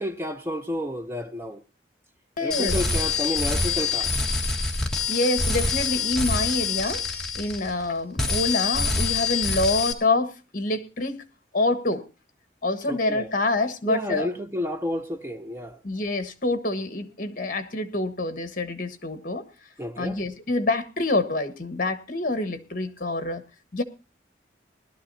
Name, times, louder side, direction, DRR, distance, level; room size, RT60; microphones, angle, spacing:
voice 1, 0.0-1.6 2.4-4.2 12.9-13.3 13.9-15.8 19.8-20.2, equal, 15° right, 0.6 m, -31 dB
voice 2, 2.4-2.8 5.1-7.0 7.3-11.2 11.5-12.0 12.6-14.3 15.8-19.4 20.0-23.4 23.7-23.8, left 2 dB, 45° left, 1.4 m, -26 dB
sound 1, 2.5-7.9 8.2-9.9, left 4 dB, 5° left, 1.6 m, -26 dB
20.0 x 12.5 x 2.8 m
head